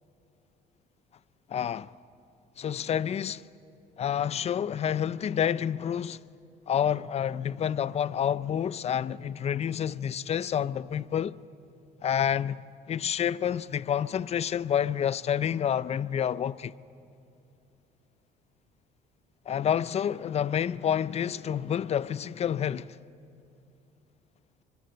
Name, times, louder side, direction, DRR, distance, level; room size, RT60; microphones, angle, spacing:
voice 1, 1.5-1.9 2.6-3.4 4.0-6.2 6.7-11.4 12.0-12.6 12.9-16.7 19.5-23.0, left 9 dB, 40° left, 0.5 m, -28 dB
24.0 x 22.0 x 7.8 m
cardioid pair, 110°, 17 cm